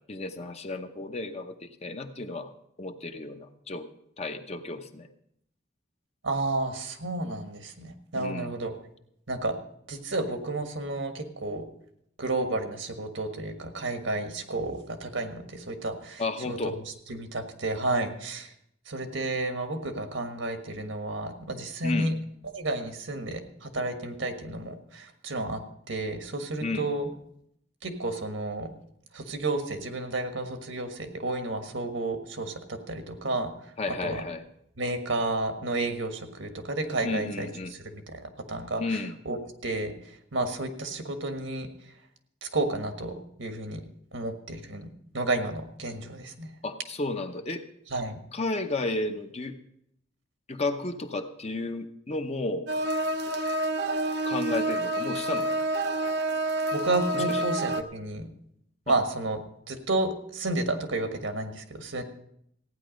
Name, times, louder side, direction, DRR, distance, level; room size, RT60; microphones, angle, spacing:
voice 1, 0.1-2.5 2.8-3.9 4.2-5.1 8.1-8.6 16.2-16.8 21.8-22.1 26.6-26.9 33.8-34.4 37.0-37.7 38.8-39.1 46.6-47.7 48.3-49.5 50.5-52.7 54.2-55.6 57.1-57.4 58.9-59.0, left 2 dB, 35° left, 7 dB, 0.8 m, -33 dB
voice 2, 6.2-8.8 9.3-9.6 9.9-11.6 12.2-16.7 17.1-18.5 18.9-22.1 22.4-25.6 25.9-27.1 27.8-28.7 29.1-33.7 34.0-34.2 34.8-39.0 39.2-39.9 40.3-41.7 42.4-43.8 44.1-44.9 45.1-46.5 47.9-48.2 56.7-58.3 58.9-59.4 59.7-62.0, right 2 dB, 75° right, 7 dB, 1.5 m, -31 dB
sound 1, 52.7-57.8, right 1 dB, 60° right, 0.7 m, -28 dB
15.0 x 9.6 x 5.2 m, 0.73 s
head